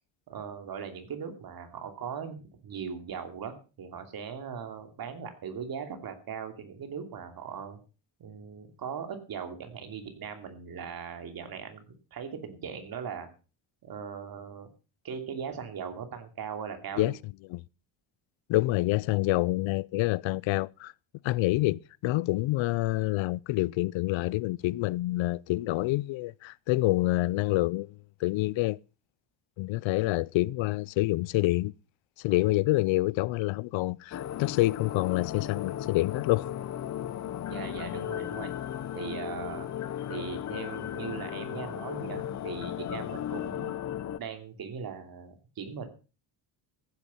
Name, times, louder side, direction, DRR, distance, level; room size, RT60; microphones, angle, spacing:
voice 1, 0.3-7.8 8.2-11.8 12.1-13.3 13.8-14.7 15.0-17.2 37.5-38.5 38.9-39.7 40.1-43.7 44.2-45.9, right 6 dB, 50° right, 2.9 m, -39 dB
voice 2, 18.5-20.9 21.2-27.9 28.2-28.8 29.6-31.7 32.2-36.5, left 19 dB, 80° left, 0.6 m, -27 dB
sound 1, 34.1-44.2, left 11 dB, 40° left, 0.6 m, -36 dB
15.0 x 9.8 x 5.6 m
cardioid pair, 145°, 46 cm